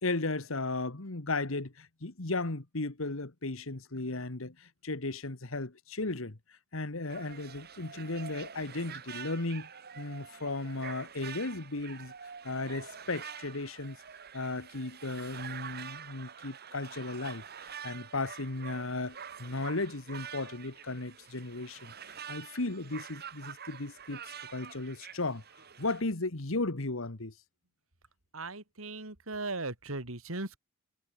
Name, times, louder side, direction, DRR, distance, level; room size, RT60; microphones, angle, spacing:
voice 1, 0.0-6.4 6.7-9.7 10.0-12.1 12.4-14.0 14.3-17.4 17.8-21.9 22.3-25.4 25.8-27.3, left 2 dB, 70° left, 1.7 m, -35 dB
sound 1, 7.1-26.0, right 7 dB, 50° right, 1.9 m, -46 dB
voice 2, 28.3-30.6, right 2 dB, 85° right, 3.6 m, -38 dB
head